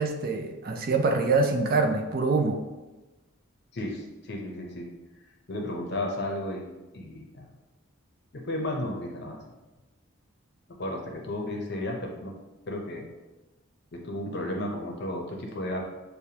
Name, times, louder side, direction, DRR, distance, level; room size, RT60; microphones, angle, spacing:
voice 1, 0.0-2.6, right 3 dB, 40° right, 3 dB, 0.4 m, -25 dB
voice 2, 3.7-4.9 5.5-6.7 6.9-7.5 8.3-9.4 10.8-12.3 12.7-13.0 13.9-15.8, left 1 dB, 50° left, 1 dB, 0.6 m, -33 dB
6.6 x 2.2 x 2.8 m, 1.1 s
head